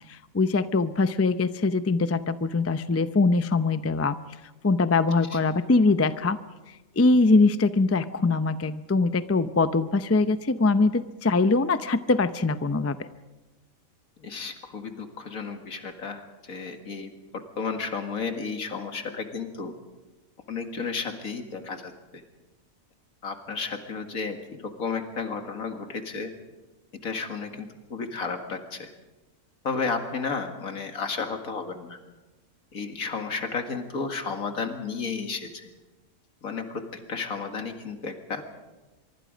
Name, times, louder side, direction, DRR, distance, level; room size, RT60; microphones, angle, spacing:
voice 1, 0.1-4.2 4.6-6.4 7.0-13.0, left 3 dB, 20° left, 12 dB, 0.4 m, -22 dB
voice 2, 14.2-19.7 20.5-22.2 23.2-26.3 27.0-28.9 29.6-32.0 32.7-35.7 36.4-36.8 37.1-38.4, left 4 dB, 80° left, 6 dB, 2.3 m, -33 dB
24.5 x 23.5 x 5.2 m, 1.1 s
omnidirectional pair, 1.5 m